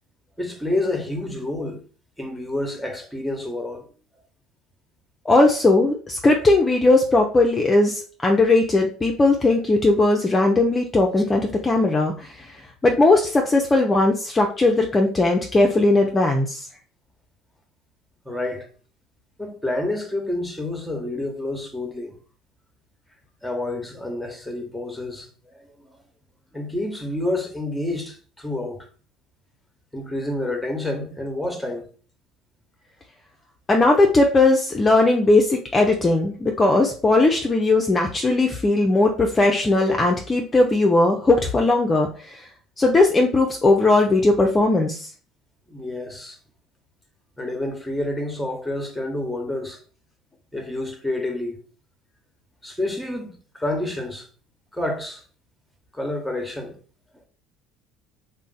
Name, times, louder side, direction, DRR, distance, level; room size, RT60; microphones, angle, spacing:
voice 1, 0.4-1.8 2.2-3.9 18.2-18.7 19.4-22.1 23.4-25.9 26.5-28.9 29.9-31.9 45.7-46.4 47.4-49.8 50.5-51.6 52.6-54.3 54.7-55.2 55.9-56.8, left 1 dB, ahead, 0.9 m, -29 dB
voice 2, 5.3-12.6 12.8-16.7 33.7-42.5 42.8-45.1, left 2 dB, 25° left, 0.5 m, -18 dB
2.5 x 2.1 x 3.9 m
hypercardioid pair, 75°, 0 cm